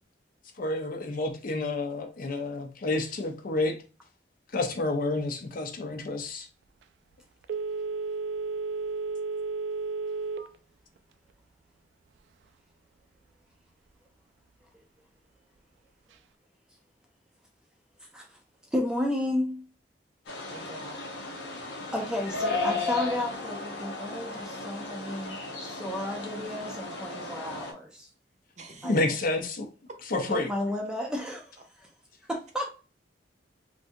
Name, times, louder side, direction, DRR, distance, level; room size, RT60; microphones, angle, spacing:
voice 1, 0.6-3.8 4.5-6.5 28.8-29.7 30.0-30.5, left 2 dB, 55° left, 0.6 m, -29 dB
Telephone, 7.4-10.6 11.0-11.1, right 4 dB, 80° right, 0.3 m, -32 dB
voice 2, 18.7-19.6 21.9-28.1 28.8-28.9 30.1-31.5 31.8-31.9 32.3-32.7, left 1 dB, 5° right, 0.4 m, -32 dB
sound 1, 20.3-27.7, left 3 dB, 90° left, 0.9 m, -34 dB
voice 3, 20.5-21.0 28.6-28.9, right 2 dB, 40° right, 0.7 m, -46 dB
3.3 x 2.6 x 2.6 m
head